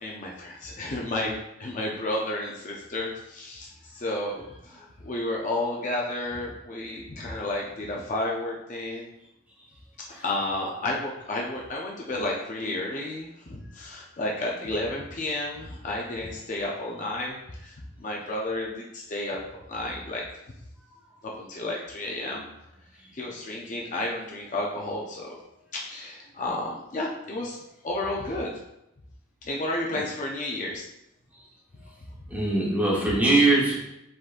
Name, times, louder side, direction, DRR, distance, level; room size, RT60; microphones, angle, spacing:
voice 1, 0.0-9.1 10.0-19.4 19.7-20.2 21.3-22.4 23.1-25.4 25.7-27.6 27.8-28.5 29.4-30.9 33.1-33.2, left 1 dB, 35° left, -2 dB, 0.5 m, -32 dB
voice 2, 32.3-33.8, right 2 dB, 5° right, -5 dB, 1.0 m, -22 dB
5.0 x 3.8 x 2.5 m, 0.86 s
head